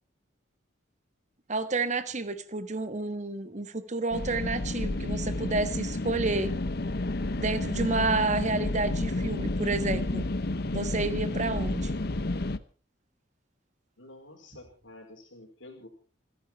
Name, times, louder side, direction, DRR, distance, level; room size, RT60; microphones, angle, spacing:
voice 1, 1.5-6.5 7.4-10.3 10.7-11.9, right 3 dB, 40° right, 12 dB, 1.4 m, -30 dB
sound 1, 4.1-12.6, left 2 dB, 55° left, 0.9 m, -31 dB
voice 2, 14.0-15.9, left 2 dB, 80° left, 2 dB, 4.3 m, -50 dB
29.0 x 10.5 x 4.5 m, 0.38 s
head